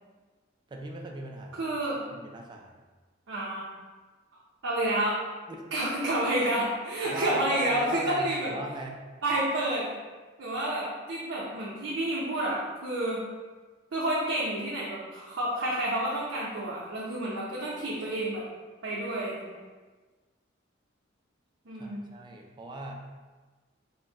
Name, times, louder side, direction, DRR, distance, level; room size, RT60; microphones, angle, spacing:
voice 1, 0.7-1.7 2.1-2.7 5.5-5.9 7.1-9.0 21.8-23.0, right 2 dB, 25° right, 1 dB, 0.3 m, -38 dB
voice 2, 1.6-2.1 3.3-3.7 4.6-5.2 5.7-8.5 9.2-9.9 10.4-13.2 13.9-18.4 18.8-19.6 21.7-22.0, right 1 dB, 90° right, -6 dB, 0.6 m, -29 dB
4.0 x 2.1 x 3.5 m, 1.3 s
head